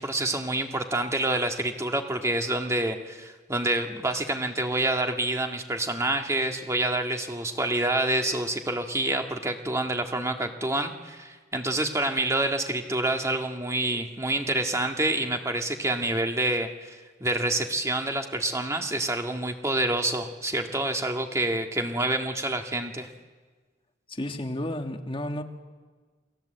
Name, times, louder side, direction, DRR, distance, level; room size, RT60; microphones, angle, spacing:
voice 1, 0.0-23.1, right 2 dB, 15° right, 4 dB, 1.8 m, -27 dB
voice 2, 24.1-25.4, left 1 dB, 25° left, 4 dB, 1.6 m, -32 dB
29.0 x 21.0 x 7.9 m, 1.4 s
head